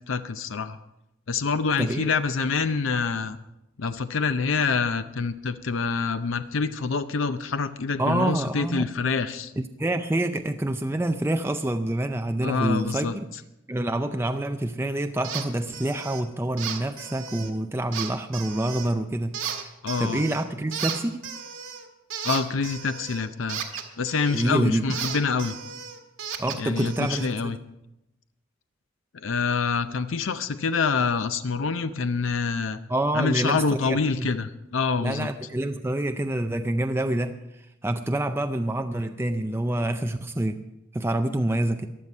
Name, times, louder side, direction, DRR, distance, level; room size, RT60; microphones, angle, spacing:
voice 1, 0.1-0.8 1.3-3.4 3.8-9.5 12.4-13.2 19.8-20.3 22.2-23.6 24.0-25.5 26.6-27.6 29.1-32.8 33.1-35.3, left 5 dB, 75° left, 11 dB, 0.6 m, -26 dB
voice 2, 1.8-2.1 8.0-8.9 9.6-13.3 13.7-19.6 20.0-21.3 24.3-25.0 26.4-27.5 32.9-34.3 35.0-40.6 40.9-41.9, right 1 dB, 10° right, 7 dB, 0.4 m, -27 dB
sound 1, 15.2-15.5 15.7-16.2 16.6-17.5 17.9-18.9 19.3-20.4 20.7-24.5 24.9-27.3, right 8 dB, 80° right, 1.7 m, -35 dB
15.5 x 11.0 x 5.4 m, 0.90 s
head